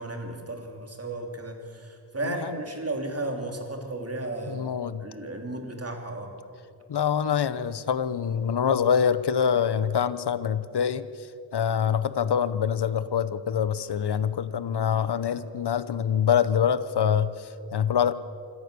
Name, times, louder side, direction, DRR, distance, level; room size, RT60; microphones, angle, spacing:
voice 1, 0.0-4.7 5.0-6.4, right 2 dB, 30° right, 3 dB, 3.1 m, -34 dB
voice 2, 2.2-2.6 4.5-5.0 6.9-11.0 11.5-18.1, left 8 dB, 60° left, 14 dB, 1.0 m, -25 dB
26.0 x 14.5 x 6.9 m, 2.5 s
wide cardioid pair, 90°, 44 cm